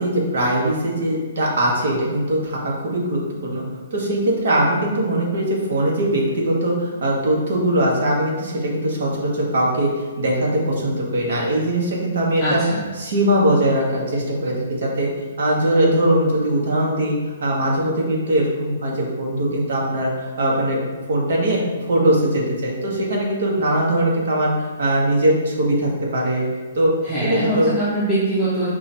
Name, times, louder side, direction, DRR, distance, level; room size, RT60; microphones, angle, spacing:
voice 1, 0.0-3.6 3.9-9.9 10.2-12.6 13.0-15.1 15.4-17.1 17.4-20.8 21.1-21.6 21.9-26.4 26.7-26.9 27.3-27.7, right 1 dB, 55° right, -3 dB, 1.1 m, -21 dB
voice 2, 12.4-12.9 27.0-28.7, right 1 dB, 5° left, -12 dB, 0.7 m, -22 dB
4.8 x 2.4 x 4.2 m, 1.4 s
hypercardioid pair, 180°, 0 cm